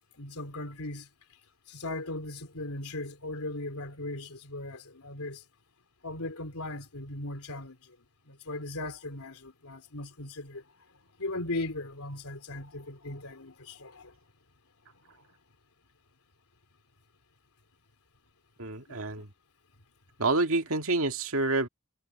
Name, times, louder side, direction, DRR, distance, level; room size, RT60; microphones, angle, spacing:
voice 1, 0.2-1.1 1.7-5.4 6.0-7.9 8.3-10.6 11.2-14.1 18.9-19.0, left 2 dB, 85° left, 3.3 m, -38 dB
voice 2, 18.6-19.3 20.2-21.7, right 2 dB, 70° right, 2.1 m, -28 dB
head